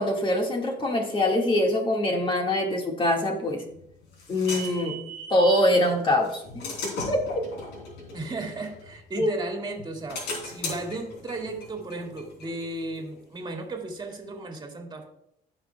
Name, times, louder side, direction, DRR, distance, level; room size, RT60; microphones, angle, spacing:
voice 1, 0.0-3.6 4.3-5.0 5.3-6.7 7.1-7.4 9.2-9.3, left 1 dB, 30° left, 1 dB, 1.9 m, -24 dB
sound 1, 3.5-5.7 6.2-9.3 9.8-13.2, left 1 dB, 85° left, 3.1 m, -37 dB
voice 2, 8.1-15.1, right 2 dB, 25° right, 2 dB, 2.0 m, -35 dB
16.0 x 5.8 x 2.3 m, 0.77 s
cardioid pair, 110°, 17 cm